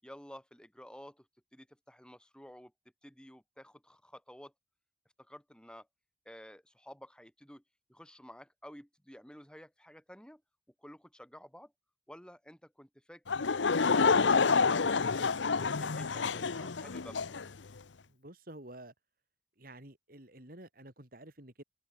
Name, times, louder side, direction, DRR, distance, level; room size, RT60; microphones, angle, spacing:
voice 1, 0.0-1.3 1.5-2.7 3.0-4.5 5.2-5.9 6.2-7.6 7.9-10.4 10.8-11.7 12.1-13.4, equal, 5° left, 6.3 m, -53 dB
Laughter / Crowd, 13.3-17.5, left 5 dB, 85° left, 0.8 m, -28 dB
voice 2, 18.1-18.9 19.6-21.6, right 1 dB, 50° right, 4.1 m, -50 dB
head